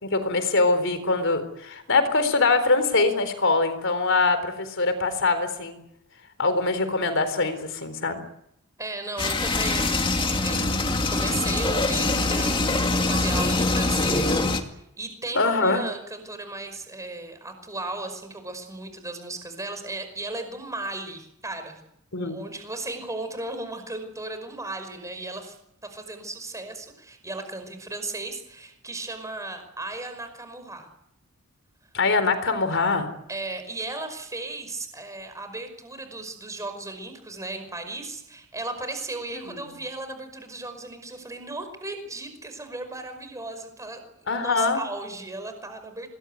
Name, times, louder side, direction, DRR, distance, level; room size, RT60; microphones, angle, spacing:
voice 1, 0.0-5.8 6.4-8.2 15.3-15.8 22.1-22.4 31.9-33.1 44.3-44.8, left 3 dB, 60° left, 10 dB, 4.0 m, -23 dB
voice 2, 8.8-12.7 13.1-21.8 22.1-25.6 25.8-30.9 33.3-46.1, right 2 dB, 15° right, 8 dB, 5.3 m, -36 dB
sound 1, 9.2-14.6, left 2 dB, 20° left, 2.2 m, -24 dB
26.5 x 21.0 x 9.3 m, 0.80 s
head